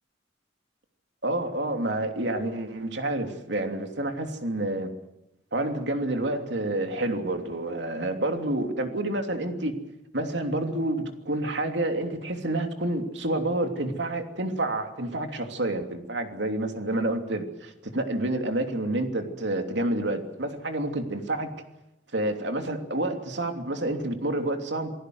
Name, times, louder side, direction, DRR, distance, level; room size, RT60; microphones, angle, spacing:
voice 1, 1.2-4.9 5.5-9.7 10.1-21.5 22.1-24.9, right 1 dB, 70° right, 5 dB, 3.1 m, -29 dB
28.0 x 18.5 x 7.9 m, 0.91 s
head